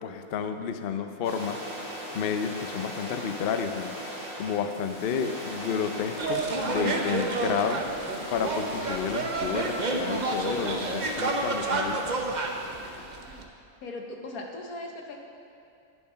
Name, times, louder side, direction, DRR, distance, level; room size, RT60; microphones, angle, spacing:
voice 1, 0.0-1.6 2.1-3.9 4.4-7.8 8.3-12.0, left 7 dB, 60° left, 8 dB, 0.6 m, -31 dB
sound 1, 1.2-13.3, equal, 20° left, 2.5 m, -39 dB
sound 2, 6.2-13.5, right 3 dB, 40° right, 0.7 m, -30 dB
voice 2, 13.8-15.2, left 2 dB, 90° left, 2 dB, 1.5 m, -39 dB
11.0 x 6.9 x 5.6 m, 2.5 s
omnidirectional pair, 1.5 m